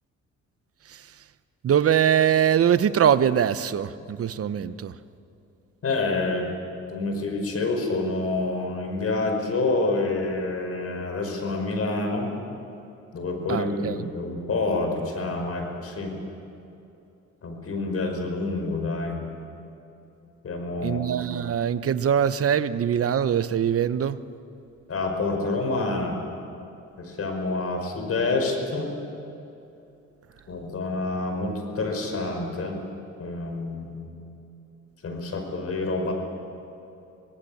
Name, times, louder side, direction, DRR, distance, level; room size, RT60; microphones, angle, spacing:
voice 1, 1.6-4.9 13.5-14.0 20.8-24.2, right 9 dB, 50° right, 13 dB, 1.0 m, -22 dB
voice 2, 5.8-6.5 6.9-12.3 13.1-16.2 17.4-19.2 20.4-21.0 24.9-26.2 27.0-28.9 30.5-32.8 33.2-34.1 35.0-36.1, left 3 dB, 50° left, 4 dB, 5.4 m, -27 dB
26.0 x 18.0 x 8.6 m, 2.8 s
cardioid pair, 90°, 30 cm